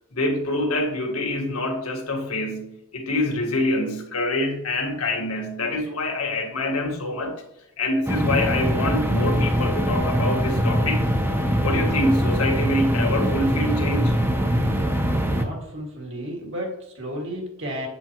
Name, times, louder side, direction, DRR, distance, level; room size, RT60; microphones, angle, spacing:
voice 1, 0.1-7.4 7.8-11.1 11.6-14.2, left 1 dB, 80° left, 1 dB, 1.7 m, -25 dB
sound 1, 8.1-15.5, equal, 10° right, 0.7 m, -22 dB
voice 2, 15.2-17.9, equal, 60° right, 0 dB, 2.2 m, -33 dB
7.9 x 7.5 x 3.0 m, 0.82 s
head